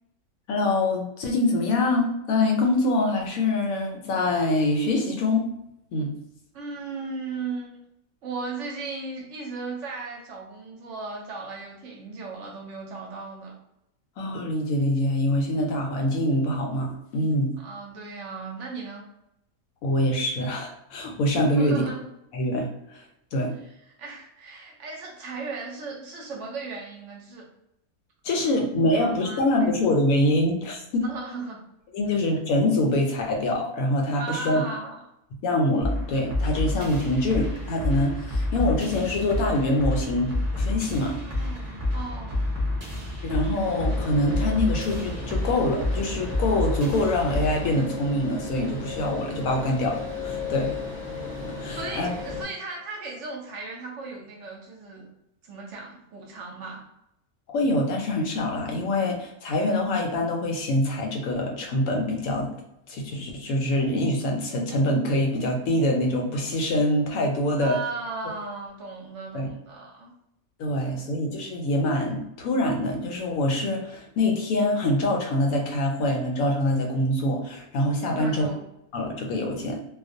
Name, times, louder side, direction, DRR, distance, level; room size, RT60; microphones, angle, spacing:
voice 1, 0.5-5.5 5.9-6.1 14.2-17.6 19.8-21.9 22.3-22.7 23.3-23.5 28.2-31.0 31.9-34.6 35.4-41.2 43.2-50.8 51.6-52.1 57.5-62.5 62.9-67.8 69.3-69.5 70.6-78.5 78.9-79.8, left 1 dB, 75° left, 1 dB, 1.0 m, -25 dB
voice 2, 6.5-7.8 8.2-13.6 17.6-19.0 21.5-22.1 23.9-27.5 28.5-29.7 31.0-31.6 34.1-35.0 41.2-42.5 51.7-55.1 55.4-56.8 67.6-70.1 78.1-78.6, right 4 dB, 65° right, -1 dB, 0.8 m, -36 dB
sound 1, 35.8-47.8, left 2 dB, 25° right, 0.3 m, -29 dB
sound 2, 43.6-52.4, left 4 dB, 25° left, 0.8 m, -35 dB
2.4 x 2.1 x 2.5 m, 0.83 s
omnidirectional pair, 1.5 m